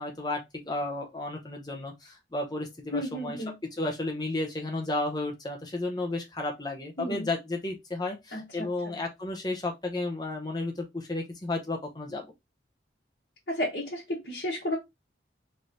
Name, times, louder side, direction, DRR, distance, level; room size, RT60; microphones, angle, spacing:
voice 1, 0.0-3.4 3.8-12.3, left 2 dB, 20° left, 0.7 m, -33 dB
voice 2, 2.9-3.5 7.0-7.3 8.3-9.0 13.5-14.8, left 1 dB, 55° left, 1.2 m, -33 dB
3.2 x 3.0 x 3.9 m
head